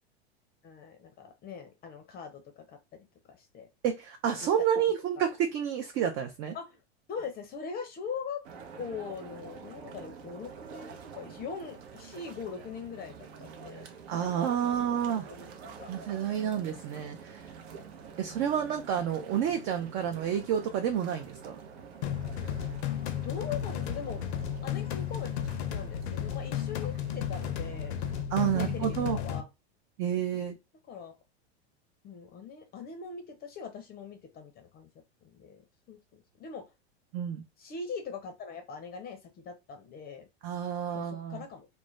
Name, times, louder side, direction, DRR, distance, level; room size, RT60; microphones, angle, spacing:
voice 1, 0.6-3.0 3.3-3.7 4.2-4.4 6.5-6.8 7.1-8.4 8.8-13.8 14.6-15.9 22.9-24.2 24.6-25.3 25.7-28.0 28.4-29.5 30.3-30.5 30.9-31.1 32.0-34.9 35.2-36.6 37.6-40.3 40.9-41.7, left 5 dB, 30° left, 0.5 m, -42 dB
voice 2, 3.8-6.6 14.1-15.3 15.9-17.5 18.2-21.6 28.3-29.2 30.0-30.6 37.1-37.4 40.4-41.4, right 9 dB, 40° right, 0.4 m, -30 dB
sound 1, 8.4-28.2, right 6 dB, 65° right, 0.7 m, -47 dB
sound 2, 22.0-29.4, left 10 dB, 75° left, 0.5 m, -33 dB
2.4 x 2.1 x 3.1 m
hypercardioid pair, 105°, 33 cm